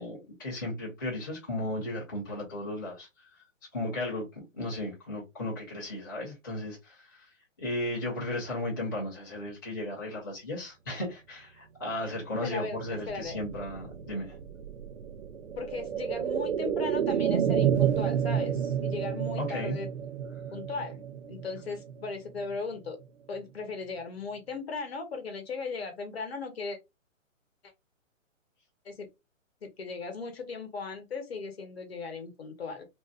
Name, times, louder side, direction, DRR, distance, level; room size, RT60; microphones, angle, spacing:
voice 1, 0.0-3.1 3.7-4.2 4.5-7.2 7.6-14.3 19.4-19.8, left 1 dB, 15° left, 0.6 m, -35 dB
voice 2, 12.4-13.4 15.6-19.9 20.5-23.0 23.3-26.8 28.8-29.1 29.6-32.9, left 4 dB, 50° left, 0.9 m, -37 dB
sound 1, 12.7-22.5 22.9-23.0, right 9 dB, 60° right, 0.5 m, -30 dB
2.5 x 2.2 x 3.4 m
hypercardioid pair, 165°, 40 cm